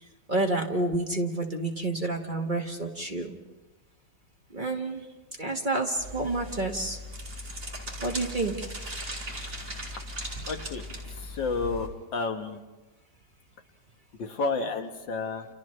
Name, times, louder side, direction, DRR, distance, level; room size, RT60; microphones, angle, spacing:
voice 1, 0.3-3.3 4.5-5.1 5.4-7.0 8.0-8.7, right 2 dB, 30° right, 1 dB, 1.4 m, -29 dB
sound 1, 6.0-11.9, equal, 45° right, 5.6 m, -38 dB
voice 2, 10.5-10.9 11.2-12.6 14.2-15.5, left 4 dB, 75° left, 5 dB, 2.1 m, -31 dB
30.0 x 29.5 x 3.2 m, 1.1 s
omnidirectional pair, 2.0 m